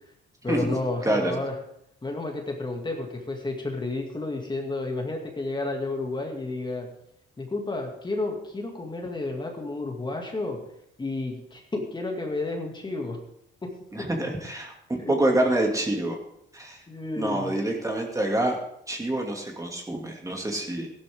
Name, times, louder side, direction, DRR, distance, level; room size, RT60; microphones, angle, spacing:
voice 1, 0.4-1.5 2.0-6.9 7.4-10.6 11.0-13.2 13.6-14.1 15.0-15.1 16.9-17.6, left 2 dB, 25° left, 2 dB, 2.4 m, -31 dB
voice 2, 13.9-16.2 16.5-16.8 17.2-18.6 18.9-20.9, right 1 dB, 15° right, 1 dB, 2.5 m, -26 dB
14.5 x 12.0 x 3.7 m, 0.75 s
cardioid pair, 90°, 20 cm